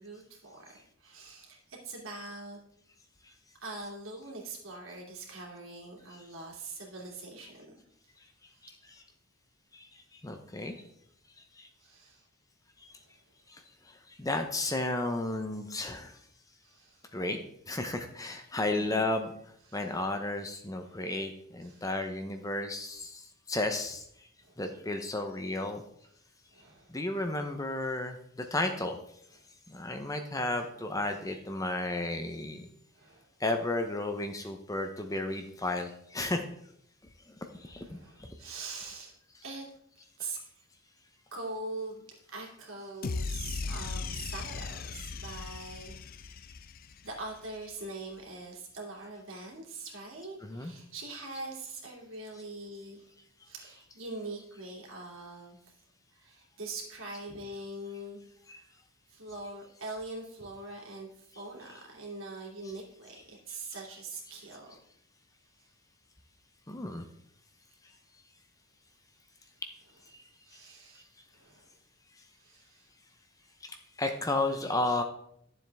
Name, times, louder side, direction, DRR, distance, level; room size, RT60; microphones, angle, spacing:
voice 1, 0.0-2.6 3.6-7.8 8.6-8.7 10.6-10.8 11.8-12.2 13.0-13.1 16.6-17.0 18.7-19.1 19.7-19.9 20.8-21.0 21.6-21.9 24.4-24.6 26.5-27.0 28.4-28.5 31.0-31.2 32.9-33.3 37.6-39.1 39.4-39.7 40.2-40.4 41.3-45.9 47.0-53.1 53.4-55.7 56.1-58.2 58.5-58.6 59.1-64.8 70.5-71.0 71.3-71.7 72.4-72.9, right 2 dB, 70° right, -1 dB, 2.7 m, -43 dB
voice 2, 10.2-10.7 11.6-11.7 14.2-16.1 17.1-17.4 17.7-19.3 19.7-23.2 23.5-24.0 24.6-25.8 26.9-29.0 29.7-32.7 33.4-36.4 37.6-38.3 50.4-50.7 58.5-58.6 66.7-67.0 74.0-75.0, left 2 dB, 15° left, 6 dB, 0.7 m, -33 dB
sound 1, 43.0-47.4, left 4 dB, 40° left, 0.4 m, -37 dB
12.0 x 7.5 x 3.5 m, 0.71 s
head